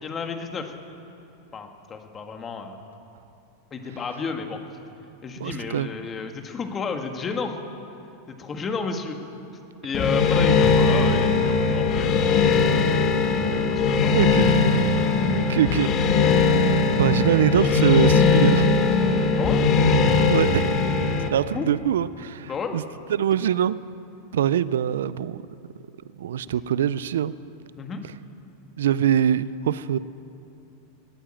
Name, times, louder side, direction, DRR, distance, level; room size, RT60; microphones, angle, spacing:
voice 1, 0.0-0.7 1.5-2.8 3.7-4.6 5.2-7.6 8.3-9.2 9.8-12.4 13.5-14.2 19.4-19.6 21.5-21.7 22.4-22.8 27.8-28.0, left 5 dB, 25° left, 5 dB, 1.6 m, -31 dB
voice 2, 5.4-5.9 14.1-14.7 15.4-15.9 16.9-18.7 20.3-20.8 21.3-22.8 23.1-23.7 24.3-25.4 26.2-27.3 28.8-30.0, right 10 dB, 85° right, 18 dB, 0.4 m, -23 dB
sound 1, 9.9-21.3, left 4 dB, 40° left, 1.5 m, -20 dB
17.5 x 9.0 x 8.8 m, 2.8 s
hypercardioid pair, 125°, 0 cm